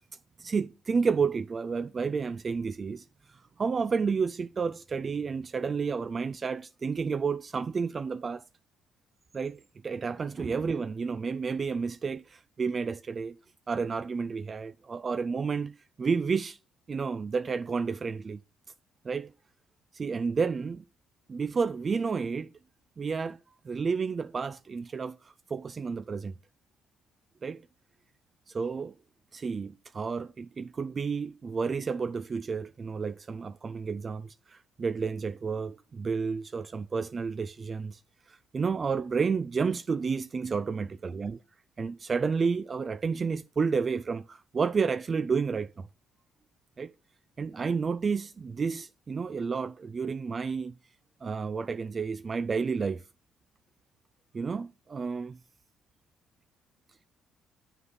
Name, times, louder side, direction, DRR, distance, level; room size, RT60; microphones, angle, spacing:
voice 1, 0.4-3.0 3.3-8.4 9.3-13.4 13.7-16.6 16.9-18.4 19.0-19.3 19.9-20.8 21.3-22.5 23.0-23.4 23.6-26.3 27.4-27.6 28.5-28.9 29.3-38.0 38.3-41.4 41.8-45.9 46.8-46.9 47.4-50.7 51.2-53.0 54.3-55.4, right 5 dB, 40° right, 0.3 m, -31 dB
7.9 x 5.7 x 4.0 m
cardioid pair, 80°, 0 cm